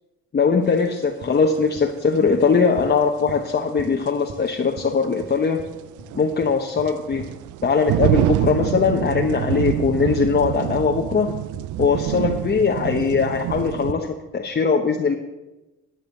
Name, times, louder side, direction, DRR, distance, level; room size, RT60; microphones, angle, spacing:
voice 1, 0.3-5.6 6.1-7.2 7.6-11.3 11.8-15.2, left 5 dB, 35° left, 2 dB, 1.0 m, -20 dB
sound 1, 0.9-1.0 3.5-3.6 4.1-4.2 5.7-13.9, right 14 dB, 75° right, 0.5 m, -26 dB
sound 2, 1.2-1.3 1.7-1.8 2.3-2.4 2.8-2.9 3.3-3.4 3.8-3.9 4.3-4.4 4.8-4.9 5.2-5.3 5.6-5.7 6.0-6.1 6.4-6.5 6.8-7.3 7.6-7.7 8.0-8.1 8.5-8.6 9.0-9.1 9.4-9.5 9.8-9.9 10.2-10.3 10.7-10.8 11.1-11.2 11.5-11.7 11.9-12.3 12.6-12.7 12.9-13.3 13.6-14.0, right 5 dB, 60° right, 1.3 m, -38 dB
11.0 x 9.3 x 6.5 m, 1.0 s
cardioid pair, 90°, 30 cm